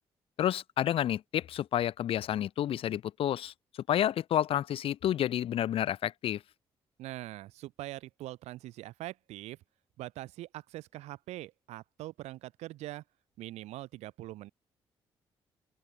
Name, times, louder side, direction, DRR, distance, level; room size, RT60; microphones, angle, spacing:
voice 1, 0.4-3.5 3.9-6.4, left 11 dB, 55° left, 0.4 m, -30 dB
voice 2, 7.0-9.6 10.0-13.0 13.4-14.5, right 16 dB, 80° right, 2.0 m, -43 dB
open air
hypercardioid pair, 50°, 11 cm